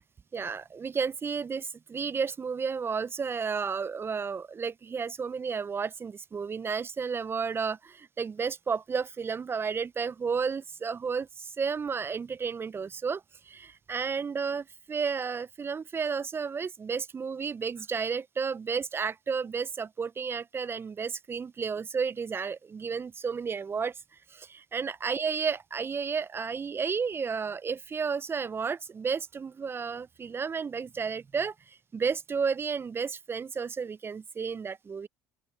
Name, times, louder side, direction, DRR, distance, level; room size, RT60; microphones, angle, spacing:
voice 1, 0.3-23.9 24.3-35.1, right 5 dB, 30° right, 1.0 m, -32 dB
open air
figure-of-eight pair, 60°, 8 cm